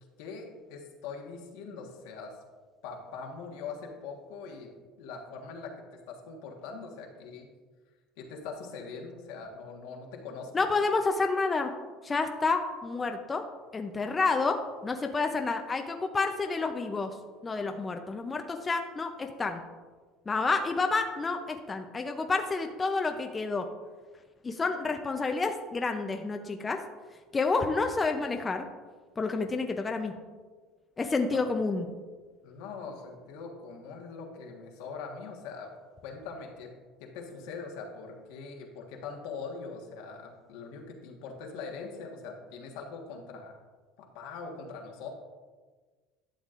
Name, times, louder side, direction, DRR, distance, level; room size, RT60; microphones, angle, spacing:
voice 1, 0.2-2.3 2.8-4.7 5.0-5.7 6.1-7.5 8.2-10.7 31.3-31.6 32.4-35.7 36.0-36.7 37.0-43.6 44.0-45.2, left 5 dB, 80° left, 1 dB, 1.4 m, -42 dB
voice 2, 10.5-11.7 12.0-13.4 13.7-17.1 17.4-19.6 20.3-23.7 24.4-26.8 27.3-28.6 29.2-30.1 31.0-31.8, left 3 dB, 20° left, 5 dB, 0.6 m, -29 dB
11.5 x 7.1 x 2.5 m, 1.4 s
supercardioid pair, 120°, 0 cm